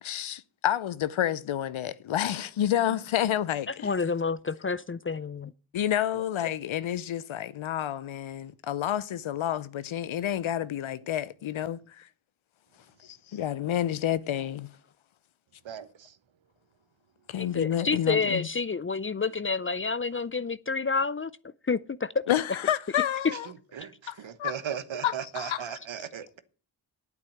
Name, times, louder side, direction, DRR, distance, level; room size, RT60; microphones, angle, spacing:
voice 1, 0.0-3.9 5.7-12.1 13.0-14.7 17.3-18.5 22.3-23.5 24.1-24.5 25.0-25.8, left 11 dB, 70° left, 0.8 m, -29 dB
voice 2, 3.7-5.5 17.4-21.3 21.7-22.2 23.8-23.9, left 4 dB, 25° left, 0.5 m, -29 dB
voice 3, 24.2-26.4, right 8 dB, 65° right, 1.2 m, -36 dB
8.9 x 7.9 x 7.1 m
cardioid pair, 45°, 50 cm